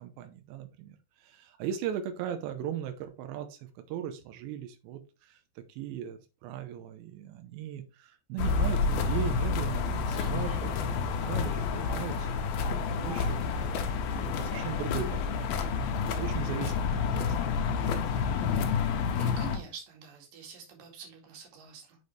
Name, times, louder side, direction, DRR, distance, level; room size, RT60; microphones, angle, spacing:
voice 1, 0.0-3.6 3.9-5.4 5.7-13.4 13.7-13.8 14.2-17.3, right 9 dB, 90° right, 7 dB, 3.1 m, -38 dB
sound 1, 8.4-19.6, left 5 dB, 70° left, 2.6 m, -29 dB
voice 2, 10.2-10.8 19.2-22.0, right 6 dB, 55° right, 1 dB, 3.5 m, -46 dB
6.9 x 6.5 x 3.2 m, 0.29 s
omnidirectional pair, 4.9 m